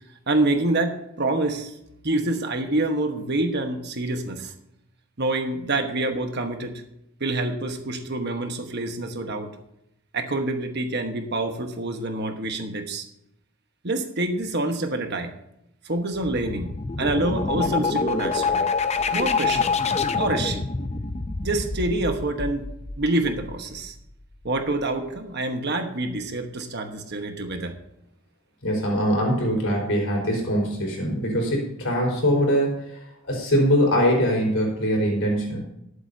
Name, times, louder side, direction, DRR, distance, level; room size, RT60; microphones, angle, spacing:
voice 1, 0.3-1.7 2.0-4.5 5.2-6.8 7.2-9.5 10.1-13.0 13.8-15.3 15.8-16.7 17.0-18.7 19.1-19.7 20.1-20.7 21.4-22.7 23.0-23.9 24.4-27.7, right 2 dB, 50° right, 5 dB, 1.3 m, -26 dB
sound 1, 16.1-23.8, left 4 dB, 30° left, 0.6 m, -26 dB
voice 2, 28.6-32.8 33.2-35.6, equal, 65° left, -1 dB, 4.4 m, -22 dB
19.5 x 8.0 x 2.8 m, 0.81 s
head